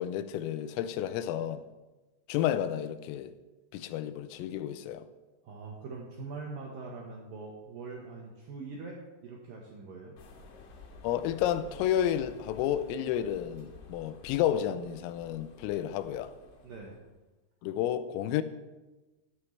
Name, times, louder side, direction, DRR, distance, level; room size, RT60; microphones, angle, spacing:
voice 1, 0.0-1.6 2.3-3.3 3.7-5.1 11.0-16.3 17.6-18.4, left 10 dB, 85° left, 3.3 m, -31 dB
voice 2, 5.4-9.0 9.2-10.2 16.6-17.0, right 4 dB, 75° right, 2.1 m, -43 dB
sound 1, 10.2-17.1, left 3 dB, 65° left, 3.6 m, -52 dB
14.0 x 13.0 x 3.3 m
omnidirectional pair, 6.0 m